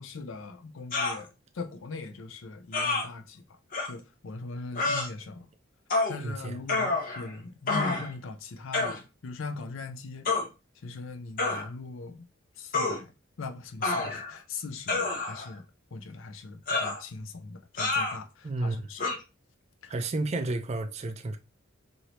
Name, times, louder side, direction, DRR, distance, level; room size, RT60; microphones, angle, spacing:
voice 1, 0.0-3.6 3.8-5.5 6.1-10.3 10.8-12.3 12.6-13.1 13.4-15.6 15.9-19.0 19.8-19.9, left 3 dB, 80° left, 0.5 m, -40 dB
sound 1, 0.9-1.2 2.7-3.0 3.7-3.9 4.7-5.1 5.9-6.2 6.7-7.3 7.7-8.1 8.7-9.0 10.2-10.5 11.4-11.6 12.7-13.0 13.8-14.4 14.9-15.5 16.7-17.0 17.8-18.2 19.0-19.2, left 3 dB, 45° left, 0.7 m, -28 dB
voice 2, 6.2-6.6 18.4-18.9 19.9-21.4, right 2 dB, 35° right, 0.4 m, -31 dB
3.2 x 2.7 x 2.9 m
head